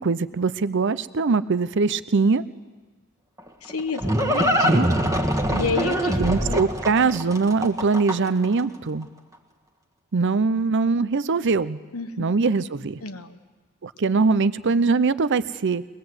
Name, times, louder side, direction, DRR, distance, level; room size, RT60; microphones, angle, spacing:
voice 1, 0.0-2.4 4.6-4.9 6.2-9.1 10.1-11.8 12.2-13.0 13.8-15.9, right 4 dB, 55° right, 16 dB, 0.6 m, -22 dB
Livestock farm animals working animals, 3.4-8.5, equal, 15° right, 1.5 m, -23 dB
voice 2, 3.6-4.7 5.5-6.6 11.9-12.3 13.0-13.4, left 4 dB, 70° left, 9 dB, 1.3 m, -30 dB
23.0 x 20.0 x 8.0 m, 1.4 s
head